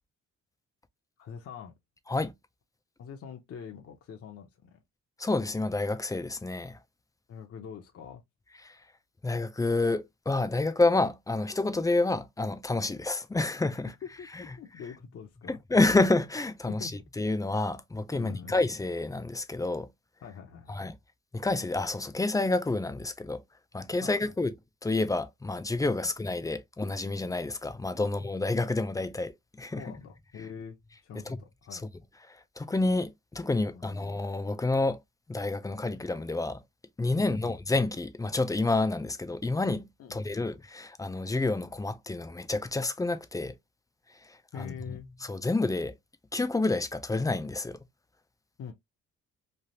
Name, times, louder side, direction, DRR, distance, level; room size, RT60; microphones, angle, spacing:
voice 1, 1.2-1.7 3.0-4.8 7.3-8.2 14.0-15.6 16.7-16.9 18.1-18.6 20.2-20.8 24.0-24.3 26.0-26.1 28.0-28.1 29.8-31.8 33.7-34.0 37.2-37.5 40.0-40.4 44.5-45.1 48.6-48.7, left 7 dB, 50° left, 0.7 m, -44 dB
voice 2, 5.2-6.8 8.6-8.7 9.2-13.9 15.5-16.9 17.2-19.9 20.7-20.9 21.3-23.4 23.7-24.5 24.8-29.8 31.3-31.4 31.7-31.8 32.3-35.0 35.3-36.6 37.0-43.5 44.6-45.9 46.3-47.8, left 2 dB, 10° left, 0.4 m, -29 dB
3.3 x 2.4 x 2.7 m
cardioid pair, 90°, 30 cm